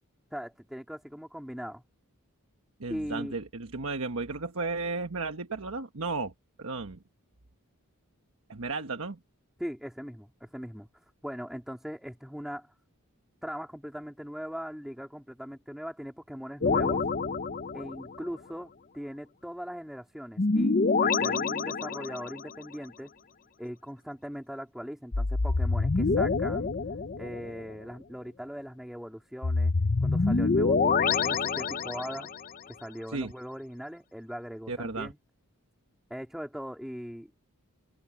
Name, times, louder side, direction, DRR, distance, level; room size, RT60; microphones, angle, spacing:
voice 1, 0.3-1.8 2.9-3.4 9.6-10.9 11.2-12.7 13.4-17.0 17.7-23.1 23.6-26.7 27.2-29.7 30.0-32.3 32.7-35.2 36.1-37.3, equal, ahead, 2.2 m, -40 dB
voice 2, 2.8-6.3 6.6-7.0 8.5-9.2 33.1-33.3 34.7-35.1, right 3 dB, 65° right, 1.3 m, -34 dB
sound 1, 16.6-18.2 20.4-22.4 25.1-27.6 29.4-32.4, left 4 dB, 40° left, 0.7 m, -26 dB
open air
head